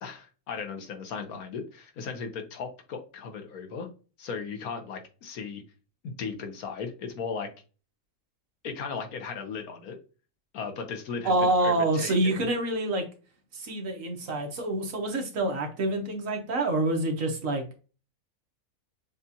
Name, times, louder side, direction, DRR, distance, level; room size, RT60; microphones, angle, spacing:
voice 1, 0.0-3.9 4.2-5.6 6.0-7.5 8.6-10.0 10.5-12.5, left 5 dB, 75° left, 5 dB, 1.3 m, -36 dB
voice 2, 11.2-13.1 13.5-17.6, right 2 dB, 60° right, 2 dB, 1.3 m, -27 dB
7.1 x 2.4 x 2.7 m, 0.35 s
omnidirectional pair, 1.6 m